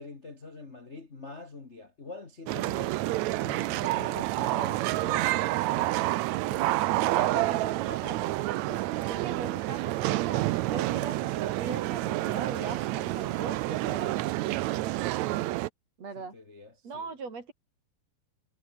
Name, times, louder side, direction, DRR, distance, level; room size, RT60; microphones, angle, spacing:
voice 1, 0.0-3.0 3.4-6.0 6.4-7.5 14.6-15.0 16.1-17.1, left 3 dB, 25° left, 1.6 m, -45 dB
sound 1, 2.5-15.7, right 17 dB, 85° right, 1.6 m, -29 dB
voice 2, 7.1-14.2 16.0-16.3 16.8-17.5, right 4 dB, 45° right, 5.3 m, -40 dB
omnidirectional pair, 4.0 m